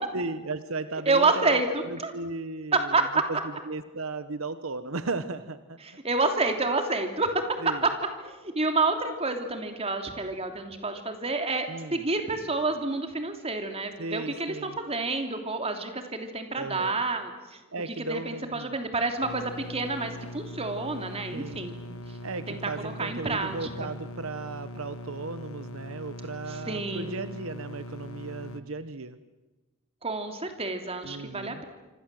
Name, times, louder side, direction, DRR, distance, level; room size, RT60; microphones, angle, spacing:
voice 1, 0.1-1.6 1.9-5.8 7.6-7.9 11.7-12.0 14.0-14.8 16.6-17.0 17.7-18.8 21.3-21.7 22.2-29.2 31.0-31.6, right 3 dB, 75° right, 12 dB, 1.0 m, -36 dB
voice 2, 1.1-2.1 2.7-3.0 5.8-7.3 7.8-7.9 8.2-17.6 18.0-21.8 22.5-23.9 26.5-27.3 30.0-31.6, right 3 dB, 30° right, 5 dB, 3.1 m, -29 dB
sound 1, 19.2-28.6, equal, 90° left, 1.6 m, -41 dB
26.5 x 26.0 x 7.7 m, 1.1 s
head